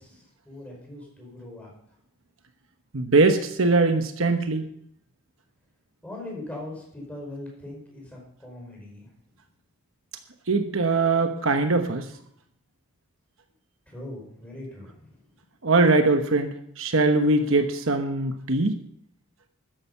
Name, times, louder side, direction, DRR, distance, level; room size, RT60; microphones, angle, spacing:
voice 1, 0.0-1.7 6.0-9.1 13.9-15.2, left 1 dB, 5° left, -2 dB, 5.1 m, -40 dB
voice 2, 2.9-4.7 10.5-12.0 15.6-18.8, right 3 dB, 65° right, 6 dB, 1.1 m, -21 dB
13.0 x 10.5 x 5.5 m, 0.68 s
head